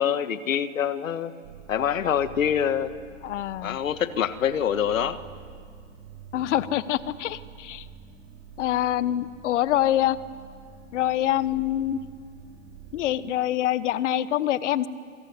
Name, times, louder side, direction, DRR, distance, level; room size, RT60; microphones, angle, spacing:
voice 1, 0.0-1.4 1.7-2.9 3.6-5.2, left 8 dB, 80° left, 12 dB, 1.7 m, -25 dB
sound 1, 1.4-13.1, right 7 dB, 50° right, 3.9 m, -47 dB
voice 2, 3.2-3.8 6.3-7.9 8.6-10.2 10.9-12.0 12.9-14.9, left 12 dB, 65° left, 15 dB, 1.3 m, -25 dB
28.0 x 22.0 x 9.7 m, 2.1 s
hypercardioid pair, 130°, 39 cm